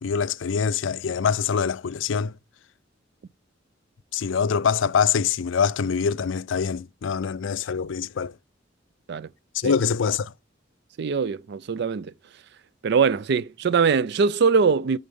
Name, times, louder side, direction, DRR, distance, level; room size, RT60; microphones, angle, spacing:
voice 1, 0.0-2.3 4.1-8.3 9.5-10.3, left 6 dB, 75° left, 0.4 m, -24 dB
voice 2, 11.0-12.1 12.8-15.0, right 5 dB, 60° right, 0.4 m, -22 dB
11.0 x 4.0 x 5.3 m
head